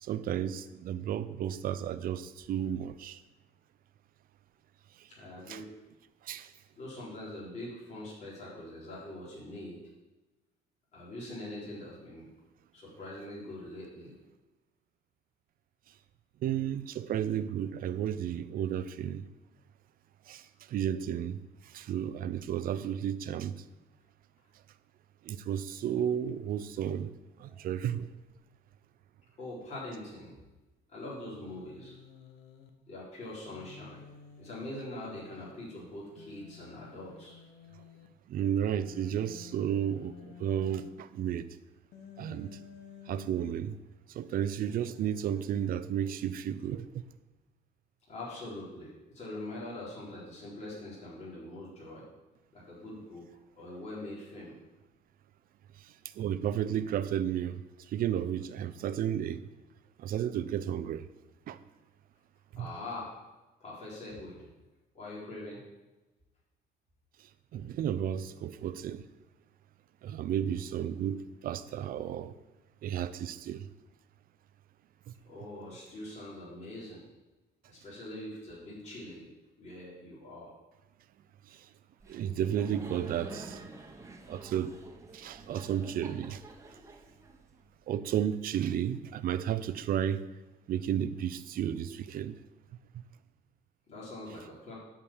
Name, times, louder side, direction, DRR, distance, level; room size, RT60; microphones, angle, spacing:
voice 1, 0.1-3.2 5.5-5.6 6.3-6.5 16.4-19.2 20.3-20.4 20.7-21.4 21.7-23.6 25.3-27.1 27.4-28.1 38.3-41.5 42.2-42.5 43.1-43.8 44.1-46.9 56.2-57.6 57.9-59.4 60.0-61.0 61.5-61.6 62.5-62.7 67.5-69.0 70.0-72.3 72.8-73.6 82.1-83.6 84.3-84.7 85.1-86.4 87.9-90.2 90.7-92.4, right 10 dB, 60° right, 0.6 m, -32 dB
voice 2, 5.1-5.7 6.8-9.8 10.9-12.3 12.7-14.1 27.5-27.6 29.4-30.4 30.9-31.9 32.9-34.0 34.4-37.4 48.1-52.0 52.5-53.2 53.6-54.6 62.5-63.2 63.6-64.4 64.9-65.6 75.2-77.0 77.7-79.3 79.6-80.6 93.9-94.7, left 1 dB, 45° left, 4.1 m, -43 dB
Human voice, 31.2-32.7 33.5-35.5 36.2-38.1 38.7-40.9 41.9-43.5 44.6-45.9, left 7 dB, 90° left, 1.1 m, -52 dB
Laughter, 82.0-87.8, right 3 dB, 20° right, 1.3 m, -48 dB
9.7 x 5.2 x 7.3 m
cardioid pair, 110°, 17 cm